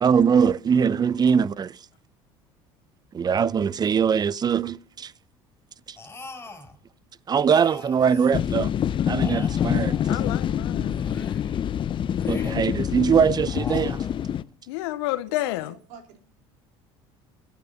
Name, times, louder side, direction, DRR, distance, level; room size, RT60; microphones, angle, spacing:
voice 1, 0.0-1.8 3.1-5.1 5.9-6.0 7.3-8.7 9.1-10.0 12.3-14.0, right 7 dB, 30° right, 0.6 m, -22 dB
sound 1, 6.0-6.8 7.5-8.6 9.1-10.4 10.9-11.6 12.2-12.9 13.4-14.4, left 3 dB, 15° left, 3.9 m, -40 dB
sound 2, 8.3-14.4, left 9 dB, 40° left, 0.6 m, -26 dB
voice 2, 10.1-11.0 14.7-15.7, left 17 dB, 85° left, 0.7 m, -29 dB
voice 3, 15.4-16.2, right 6 dB, 75° right, 3.6 m, -46 dB
12.5 x 8.8 x 6.4 m
supercardioid pair, 85°, 13 cm